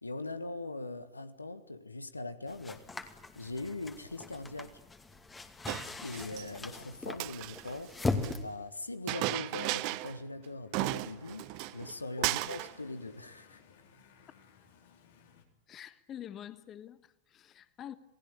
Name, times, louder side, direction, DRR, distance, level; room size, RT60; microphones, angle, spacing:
voice 1, 0.0-2.8 3.3-4.8 6.0-8.0 8.4-11.5 11.7-13.6, left 2 dB, 80° left, 1.5 m, -41 dB
sound 1, 2.5-8.4, left 3 dB, 15° left, 2.4 m, -39 dB
Chink clink, 5.7-6.5 7.1-8.4 9.1-10.2 10.4-10.5 10.7-11.9 12.2-12.7, right 20 dB, 45° right, 1.0 m, -35 dB
sound 2, 7.1-15.5, left 7 dB, 60° left, 4.2 m, -62 dB
voice 2, 15.7-17.9, left 10 dB, 30° left, 1.4 m, -46 dB
28.5 x 19.5 x 8.7 m
figure-of-eight pair, 90°, 0 cm